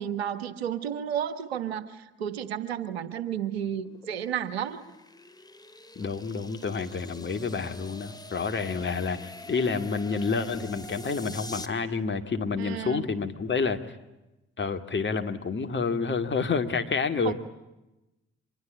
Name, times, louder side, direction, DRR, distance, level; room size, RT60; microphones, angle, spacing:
voice 1, 0.0-4.8 12.6-13.0 17.2-17.3, right 9 dB, 80° right, 14 dB, 1.3 m, -32 dB
sound 1, 3.7-11.7, left 2 dB, 10° left, 2.6 m, -45 dB
voice 2, 6.0-13.8 14.6-17.3, left 5 dB, 35° left, 6 dB, 2.3 m, -29 dB
25.0 x 22.0 x 9.9 m, 0.97 s
figure-of-eight pair, 40°, 31 cm